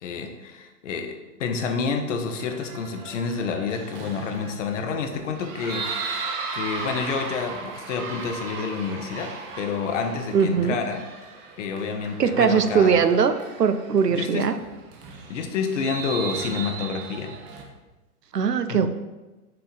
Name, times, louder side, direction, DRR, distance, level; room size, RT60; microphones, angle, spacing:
voice 1, 0.0-5.9 6.5-11.0 11.6-13.1 14.1-14.5 15.3-17.3 18.7-18.9, left 5 dB, 50° left, 6 dB, 0.9 m, -29 dB
sound 1, 2.3-17.6, right 4 dB, 20° right, 0.6 m, -37 dB
voice 2, 10.3-10.8 12.2-14.6 18.3-18.9, right 6 dB, 85° right, 10 dB, 0.6 m, -20 dB
6.5 x 3.9 x 4.2 m, 1.1 s
figure-of-eight pair, 110°, 47 cm